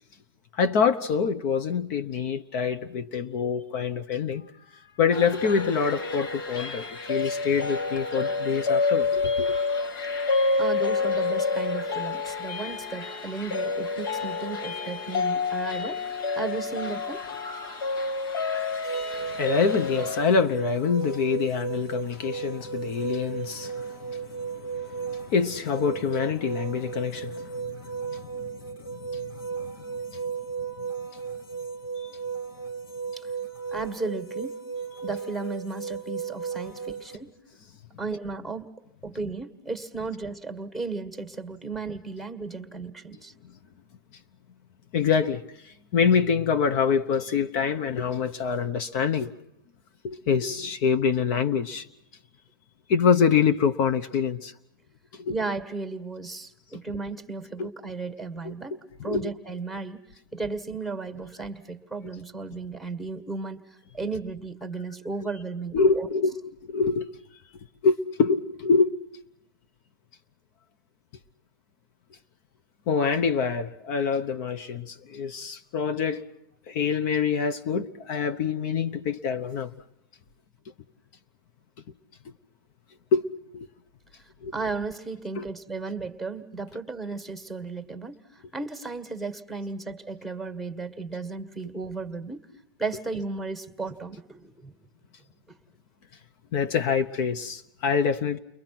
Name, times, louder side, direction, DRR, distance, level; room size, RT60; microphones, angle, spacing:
voice 1, 0.5-4.5 5.0-9.5 19.3-28.5 28.9-29.3 29.6-30.2 32.0-32.1 44.9-49.3 50.0-51.9 52.9-54.5 55.1-55.3 57.6-57.7 58.4-58.5 59.0-59.3 65.7-66.3 66.7-67.0 67.8-68.9 72.9-76.2 76.7-79.7 83.1-83.3 83.5-83.7 84.4-84.5 85.4-85.5 96.5-98.4, left 6 dB, 50° left, 1.0 m, -26 dB
sound 1, 5.1-20.2, left 4 dB, 70° left, 2.1 m, -28 dB
voice 2, 10.6-17.2 33.2-33.3 33.7-34.6 35.0-37.3 38.0-38.7 39.0-43.3 55.3-58.7 59.0-60.0 60.3-66.1 84.5-92.4 92.8-94.8 95.5-95.6, right 3 dB, ahead, 1.8 m, -34 dB
sound 2, 18.8-37.2, right 6 dB, 85° left, 3.5 m, -35 dB
30.0 x 22.0 x 6.0 m
hypercardioid pair, 110°, 12 cm